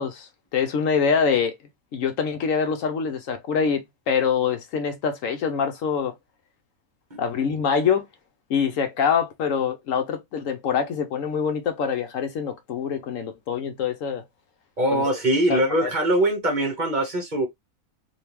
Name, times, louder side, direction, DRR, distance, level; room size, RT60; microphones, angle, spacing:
voice 1, 0.0-1.5 1.9-6.1 7.2-8.1 8.5-14.2 14.9-15.0 15.5-15.9, left 6 dB, 65° left, 1.0 m, -25 dB
voice 2, 14.8-17.5, right 1 dB, 35° right, 1.0 m, -22 dB
3.4 x 2.8 x 2.9 m
omnidirectional pair, 1.5 m